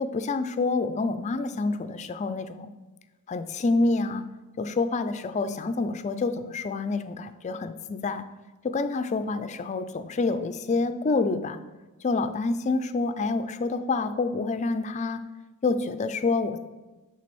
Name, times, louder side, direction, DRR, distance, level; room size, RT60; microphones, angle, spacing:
voice 1, 0.0-2.7 3.3-4.2 4.6-8.2 8.6-11.6 12.0-15.2 15.6-16.6, left 3 dB, 35° left, 11 dB, 0.4 m, -27 dB
6.3 x 3.4 x 6.0 m, 1.2 s
head